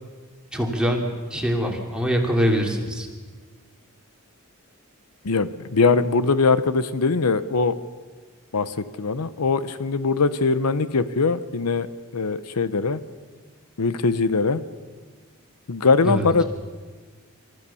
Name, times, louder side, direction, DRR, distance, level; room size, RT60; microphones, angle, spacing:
voice 1, 0.5-3.1 16.0-16.3, equal, 5° right, 1 dB, 2.8 m, -23 dB
voice 2, 5.2-7.8 8.5-11.9 12.1-13.0 13.8-14.6 15.7-16.4, left 4 dB, 85° left, 14 dB, 0.8 m, -21 dB
28.0 x 14.0 x 7.0 m, 1.5 s
head